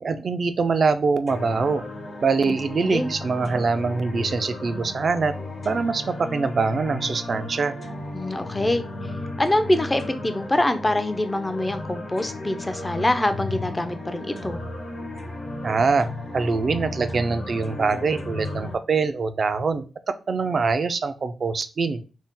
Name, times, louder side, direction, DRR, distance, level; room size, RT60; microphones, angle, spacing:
voice 1, 0.0-1.8 2.2-5.3 5.6-7.8 15.6-16.1 16.3-19.8 20.3-22.0, right 4 dB, 60° right, 10 dB, 0.3 m, -23 dB
sound 1, 1.3-18.7, left 2 dB, 60° left, 1.0 m, -34 dB
voice 2, 8.1-8.8 9.4-14.6, left 1 dB, 20° left, 9 dB, 0.4 m, -24 dB
2.7 x 2.0 x 3.5 m, 0.33 s
cardioid pair, 60°, 0 cm